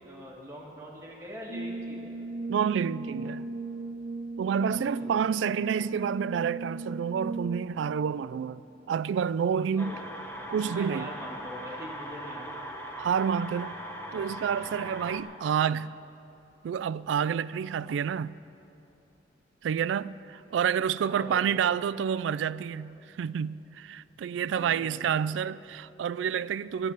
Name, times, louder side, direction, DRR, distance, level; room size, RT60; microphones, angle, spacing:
voice 1, 0.0-2.1 4.5-5.2 9.7-10.0 10.5-12.8 14.6-14.8 21.1-21.5 24.3-25.1, equal, 15° right, 2.0 m, -43 dB
Brass instrument, 1.5-7.9, right 3 dB, 65° right, 0.8 m, -37 dB
voice 2, 2.5-3.5 4.4-8.6 8.9-10.0 10.5-11.1 13.0-13.7 14.1-15.9 16.6-18.4 19.6-26.9, right 7 dB, 90° right, 0.3 m, -29 dB
sound 1, 9.8-15.2, equal, 15° left, 1.0 m, -40 dB
13.0 x 7.7 x 9.9 m
head